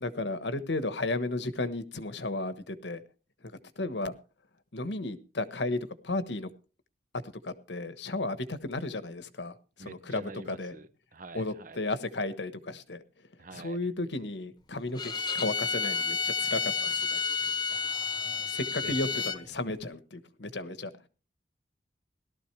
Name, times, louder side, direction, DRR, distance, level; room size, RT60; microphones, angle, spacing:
voice 1, 0.0-3.0 3.4-4.1 4.7-5.8 6.0-6.5 7.4-10.8 11.3-13.0 13.5-17.2 18.2-20.9, left 2 dB, 85° left, 1.4 m, -34 dB
voice 2, 9.8-11.8 13.4-13.8 17.1-17.4 17.7-18.5 18.8-19.3, right 3 dB, 50° right, 1.0 m, -47 dB
Bowed string instrument, 14.9-19.4, left 5 dB, 25° left, 1.1 m, -31 dB
18.0 x 13.0 x 3.3 m
head